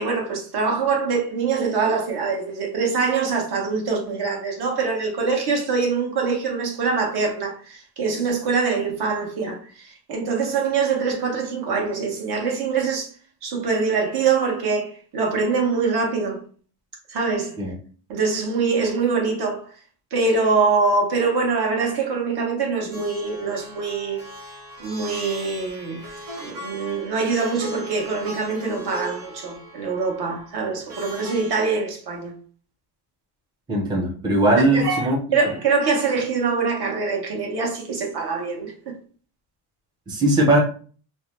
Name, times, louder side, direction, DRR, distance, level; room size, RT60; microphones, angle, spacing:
voice 1, 0.0-13.1 13.4-16.4 17.1-17.5 18.1-19.7 20.1-24.2 24.8-26.0 26.4-32.3 34.6-38.7, right 4 dB, 55° right, 1.0 m, -24 dB
Plucked string instrument, 22.9-31.5, left 1 dB, 90° right, 1.1 m, -38 dB
voice 2, 33.7-35.2 40.1-40.6, right 1 dB, 10° right, 0.4 m, -19 dB
2.6 x 2.1 x 2.9 m
cardioid pair, 135°, 46 cm